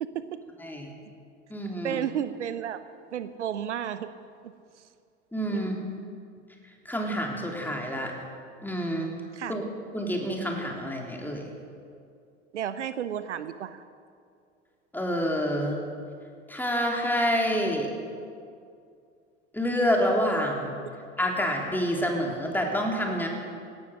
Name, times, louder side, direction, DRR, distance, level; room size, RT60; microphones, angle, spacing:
voice 1, 0.0-0.4 1.8-2.8 3.1-4.1 4.4-4.5 5.5-5.8 9.3-9.6 12.5-13.8, right 9 dB, 80° right, 13 dB, 0.7 m, -32 dB
voice 2, 0.6-0.9 1.5-2.0 5.3-5.8 6.9-8.1 8.6-9.1 9.5-9.6 9.9-11.5 14.9-15.8 16.5-17.9 19.5-20.7 21.2-23.3, equal, 5° left, 0 dB, 3.4 m, -27 dB
17.0 x 12.5 x 6.5 m, 2.3 s
figure-of-eight pair, 75°, 35 cm